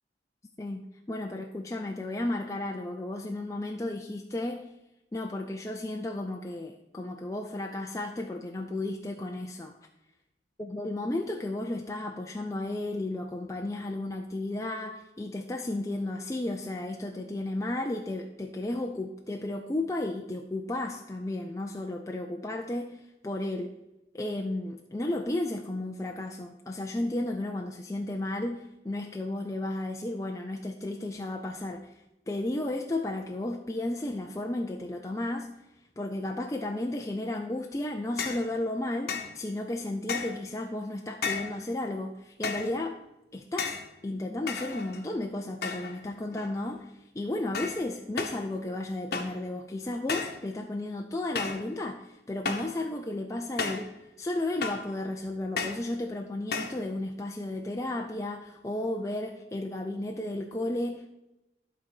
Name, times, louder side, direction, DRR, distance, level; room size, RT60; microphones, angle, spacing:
voice 1, 0.6-4.7 5.1-9.8 10.6-23.7 24.1-32.0 32.3-35.5 36.0-43.0 43.3-43.8 44.0-53.9 54.2-61.1, left 1 dB, 15° left, 2 dB, 0.4 m, -33 dB
sound 1, 38.2-38.5 39.1-39.4 40.1-40.4 41.2-41.6 42.4-42.8 43.6-43.9 44.5-45.1 45.6-46.0 46.3-46.8 47.5-47.8 48.2-48.4 49.1-49.4 50.1-50.4 51.3-51.7 52.4-52.8 53.6-53.9 54.6-54.9 55.6-55.9 56.5-56.8, left 5 dB, 55° left, 1.0 m, -33 dB
11.5 x 4.0 x 6.4 m, 0.91 s
head